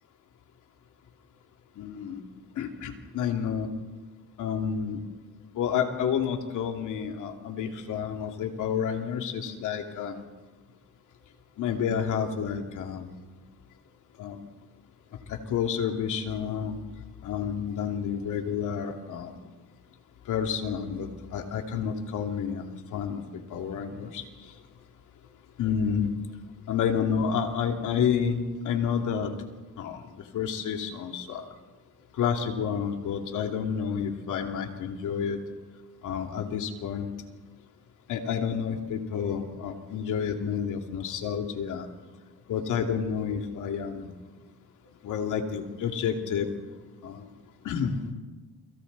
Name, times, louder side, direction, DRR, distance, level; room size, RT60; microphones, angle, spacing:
voice 1, 1.8-2.2 2.6-3.7 4.4-5.0 5.5-10.2 11.6-13.1 14.2-14.4 15.3-16.8 17.2-19.3 20.3-22.6 22.9-24.6 25.6-26.1 26.7-29.3 29.8-30.0 30.3-31.4 32.2-35.4 36.0-37.1 38.1-41.9 42.5-44.1 45.0-46.5 47.0-47.3 47.6-48.0, left 7 dB, 80° left, 3 dB, 2.8 m, -30 dB
29.0 x 24.5 x 4.1 m, 1.3 s
cardioid pair, 90°, 30 cm